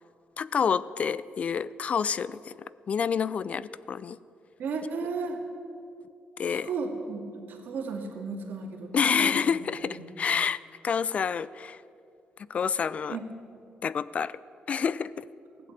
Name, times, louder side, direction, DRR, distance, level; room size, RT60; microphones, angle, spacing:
voice 1, 0.4-4.2 6.4-6.7 8.9-11.8 12.4-13.2 13.8-14.4 14.7-15.3, left 6 dB, 40° left, 18 dB, 0.3 m, -28 dB
voice 2, 4.6-5.4 6.5-9.3 9.8-10.1 13.1-13.2, right 4 dB, 70° right, 2 dB, 2.0 m, -34 dB
15.5 x 7.8 x 8.8 m, 2.5 s
cardioid pair, 130°, 3 cm